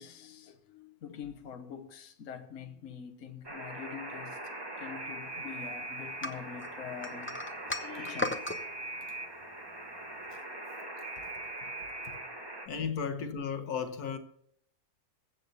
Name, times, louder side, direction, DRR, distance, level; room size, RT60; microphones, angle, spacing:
voice 1, 0.0-7.4 7.8-8.5 11.2-11.7 12.0-12.2, left 8 dB, 60° left, 1.3 m, -45 dB
Alarm, 3.4-12.7, right 2 dB, 15° right, 1.3 m, -41 dB
sound 1, 6.2-8.6, left 2 dB, 15° left, 0.5 m, -36 dB
voice 2, 12.7-14.2, left 6 dB, 75° left, 1.5 m, -34 dB
21.0 x 7.9 x 4.0 m
omnidirectional pair, 1.6 m